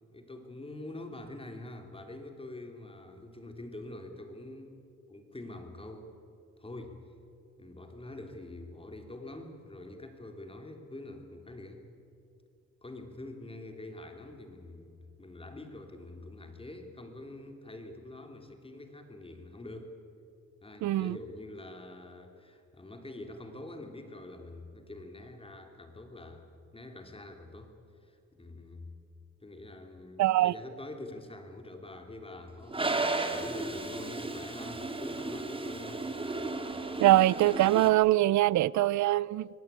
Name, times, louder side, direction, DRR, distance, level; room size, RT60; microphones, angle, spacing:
voice 1, 0.1-4.8 5.1-6.1 6.6-7.0 7.6-11.8 12.8-19.9 20.6-26.4 26.7-27.7 28.0-29.0 29.4-36.1, left 2 dB, 20° left, 3.4 m, -45 dB
voice 2, 20.8-21.2 30.2-30.5 37.0-39.5, right 16 dB, 70° right, 0.5 m, -23 dB
Toilet flush, 32.7-37.9, right 2 dB, 15° right, 2.9 m, -34 dB
24.0 x 18.5 x 9.3 m
cardioid pair, 90°, 30 cm